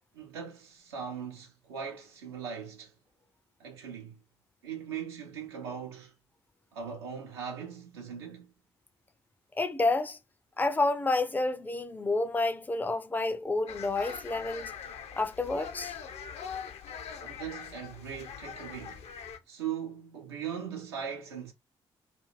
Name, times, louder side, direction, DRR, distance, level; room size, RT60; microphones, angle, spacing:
voice 1, 0.1-2.9 3.6-4.2 4.6-6.1 6.7-8.5 17.2-19.0 19.5-21.5, right 7 dB, 80° right, 0.7 m, -39 dB
voice 2, 9.6-10.2 10.6-14.7 15.2-15.9, left 2 dB, 15° left, 0.5 m, -29 dB
sound 1, 13.7-19.4, left 7 dB, 55° left, 0.6 m, -42 dB
2.6 x 2.4 x 3.0 m
figure-of-eight pair, 40°, 13 cm